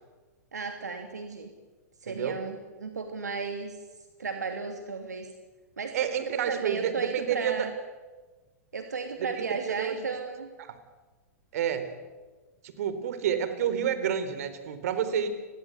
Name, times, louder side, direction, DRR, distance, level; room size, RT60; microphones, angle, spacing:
voice 1, 0.5-1.5 2.0-3.8 4.2-5.3 5.8-7.7 8.7-10.5, right 4 dB, 85° right, 5 dB, 2.7 m, -34 dB
voice 2, 2.1-2.4 5.9-7.7 9.2-10.0 10.6-10.8 11.5-11.9 12.6-15.3, right 8 dB, 65° right, 11 dB, 4.1 m, -29 dB
30.0 x 22.0 x 8.1 m, 1.3 s
hypercardioid pair, 110°, 9 cm